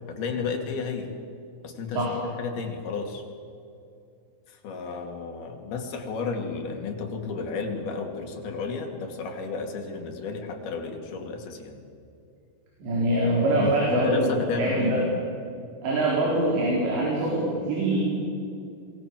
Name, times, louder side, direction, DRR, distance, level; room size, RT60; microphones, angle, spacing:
voice 1, 0.1-1.1 1.6-3.2 4.5-11.8 13.6-15.2, left 4 dB, 55° left, 3 dB, 4.1 m, -32 dB
voice 2, 12.8-14.3 14.6-15.0 15.8-18.0, right 1 dB, 65° right, -3 dB, 6.4 m, -24 dB
26.0 x 22.0 x 7.7 m, 2.6 s
omnidirectional pair, 5.5 m